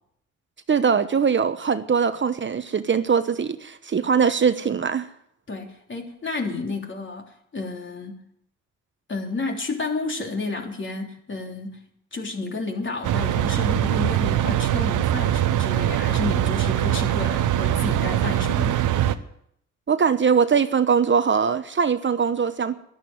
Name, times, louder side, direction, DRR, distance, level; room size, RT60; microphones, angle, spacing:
voice 1, 0.7-5.1 19.9-22.8, right 6 dB, 40° right, 1.0 m, -21 dB
voice 2, 5.5-8.2 9.1-11.8 12.1-18.9, left 3 dB, 40° left, 3.4 m, -31 dB
sound 1, 13.0-19.1, right 12 dB, 80° right, 1.0 m, -22 dB
12.0 x 11.5 x 9.3 m
cardioid pair, 75°, 31 cm